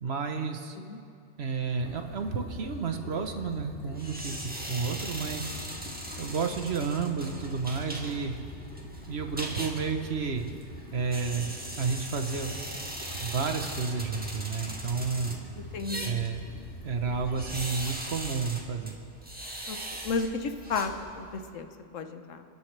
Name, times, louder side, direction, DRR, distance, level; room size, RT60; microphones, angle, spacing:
voice 1, 0.0-0.8 1.4-5.5 6.2-8.3 9.1-10.5 10.9-12.6 13.2-15.4 16.0-16.4 16.8-19.0, right 5 dB, 60° right, 5 dB, 1.2 m, -31 dB
sound 1, 1.8-18.1, left 1 dB, 70° left, 2.4 m, -44 dB
sound 2, 4.0-21.5, right 1 dB, 5° right, 1.4 m, -40 dB
voice 2, 15.7-16.2 19.7-19.8 20.0-22.4, left 4 dB, 85° left, 7 dB, 1.3 m, -33 dB
29.5 x 10.5 x 3.3 m, 2.5 s
omnidirectional pair, 1.3 m